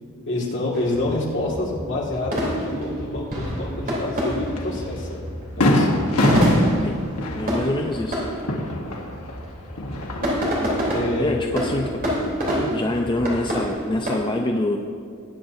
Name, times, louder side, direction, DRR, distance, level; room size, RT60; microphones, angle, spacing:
voice 1, 0.3-5.2 5.5-5.9 10.9-11.4 12.5-12.7, left 1 dB, 55° left, -4 dB, 2.1 m, -27 dB
sound 1, 0.7-14.1, equal, 45° right, 3.4 m, -27 dB
Fireworks, 4.6-4.7 5.1-5.2 5.6-9.4 9.7-10.5, left 1 dB, 80° left, 1.3 m, -23 dB
voice 2, 7.3-8.2 11.2-11.9 12.7-14.8, left 1 dB, 20° left, 2 dB, 0.5 m, -25 dB
20.0 x 8.9 x 2.7 m, 2.2 s
head